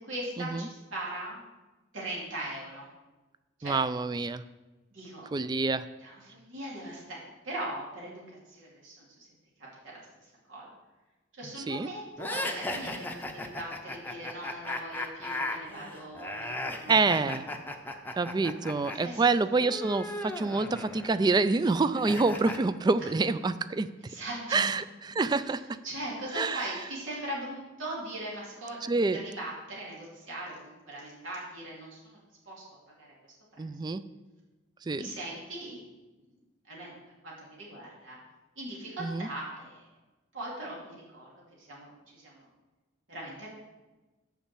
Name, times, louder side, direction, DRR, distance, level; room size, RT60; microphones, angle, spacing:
voice 1, 0.0-1.4 1.9-2.9 3.6-3.8 4.9-5.3 6.0-9.3 9.8-10.7 11.4-17.2 19.0-19.2 24.0-24.7 25.5-25.6 25.8-32.6 33.0-33.1 33.5-33.6 35.0-35.9 36.2-36.3 36.7-37.0 37.2-38.2 38.6-39.8 40.3-41.3 41.6-42.5 43.1-43.5, right 1 dB, 90° right, -5 dB, 2.7 m, -40 dB
voice 2, 3.6-4.4 5.3-5.8 11.7-11.9 16.9-17.4 18.2-23.9 24.5-25.8 26.4-26.6 28.8-29.2 33.6-34.0 34.9-35.1 39.0-39.3, right 3 dB, 20° right, 14 dB, 0.3 m, -27 dB
sound 1, 12.2-19.0 19.2-22.6, left 1 dB, 10° left, 0.6 m, -37 dB
7.1 x 5.5 x 7.4 m, 1.1 s
head